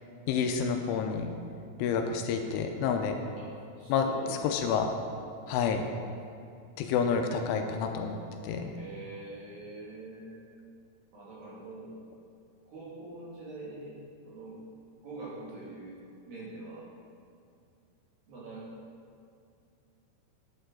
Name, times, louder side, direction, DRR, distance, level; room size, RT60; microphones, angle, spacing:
voice 1, 0.3-1.3 1.8-3.2 3.9-4.1 4.4-5.0 5.5-5.8 6.8-8.2 8.4-8.7, left 6 dB, 85° left, 5 dB, 3.1 m, -29 dB
voice 2, 3.8-4.7 8.7-10.6 11.1-11.9 12.7-13.9 14.2-14.6 15.0-16.0 16.3-16.9 18.3-18.7, right 2 dB, 55° right, -8 dB, 3.5 m, -44 dB
10.5 x 9.5 x 3.8 m, 2.5 s
omnidirectional pair, 5.6 m